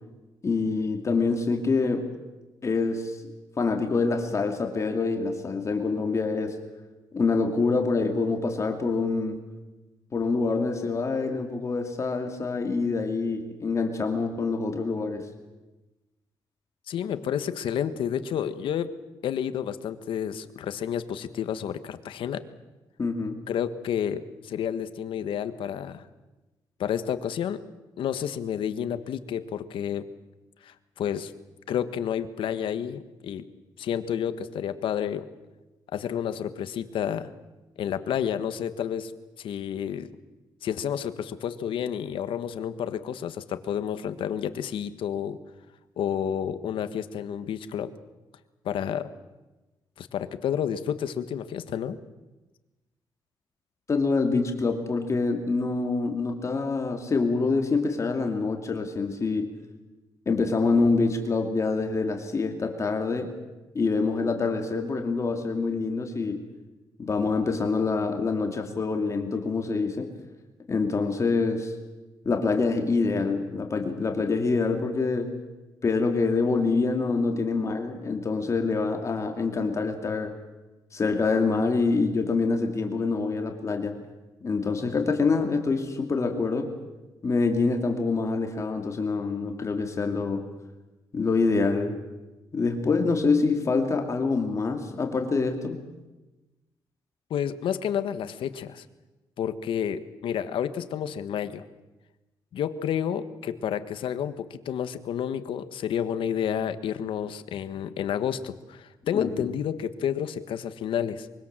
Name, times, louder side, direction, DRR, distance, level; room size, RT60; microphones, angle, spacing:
voice 1, 0.4-2.1 2.6-3.2 3.6-6.6 7.1-9.4 10.1-15.3 23.0-23.4 53.9-59.5 60.3-63.3 63.7-66.4 67.0-70.1 70.7-71.7 72.2-75.3 75.8-80.3 80.9-83.9 84.4-86.7 87.2-90.4 91.1-92.0 92.5-95.8 109.1-109.3, left 4 dB, 35° left, 4 dB, 2.7 m, -26 dB
voice 2, 16.9-18.9 19.2-22.4 23.5-26.0 26.8-27.6 28.0-30.0 30.6-31.3 31.7-33.4 33.8-35.3 35.9-37.3 37.8-39.1 39.4-40.1 40.6-45.4 46.0-47.9 48.6-49.1 50.0-52.0 97.3-98.8 99.4-101.6 102.5-111.3, left 9 dB, 85° left, 11 dB, 1.5 m, -30 dB
24.0 x 24.0 x 7.6 m, 1.1 s
cardioid pair, 125°, 9 cm